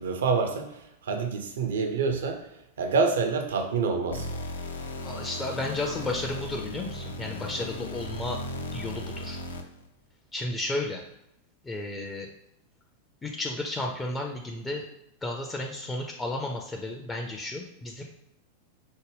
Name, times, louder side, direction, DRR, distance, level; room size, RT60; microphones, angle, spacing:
voice 1, 0.0-2.5 2.8-4.3, right 4 dB, 65° right, 4 dB, 0.5 m, -27 dB
sound 1, 4.1-9.9, left 1 dB, 70° left, 0.4 m, -36 dB
voice 2, 5.0-8.4 8.7-9.4 10.3-11.0 11.6-12.3 13.2-14.9 15.2-18.0, left 2 dB, 15° left, 1 dB, 0.4 m, -33 dB
5.1 x 2.1 x 3.3 m, 0.82 s
figure-of-eight pair, 90°, 0 cm